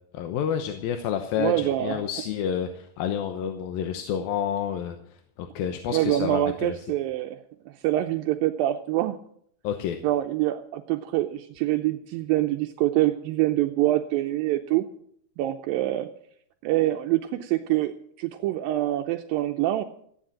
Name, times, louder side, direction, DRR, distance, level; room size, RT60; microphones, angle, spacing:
voice 1, 0.1-5.0 5.4-6.7 9.6-10.0, left 9 dB, 80° left, 6 dB, 2.8 m, -29 dB
voice 2, 1.4-2.0 5.9-7.4 7.8-9.2 10.0-14.9 15.4-16.1 16.6-19.8, right 14 dB, 80° right, 5 dB, 2.4 m, -25 dB
15.0 x 10.5 x 7.3 m, 0.66 s
omnidirectional pair, 4.2 m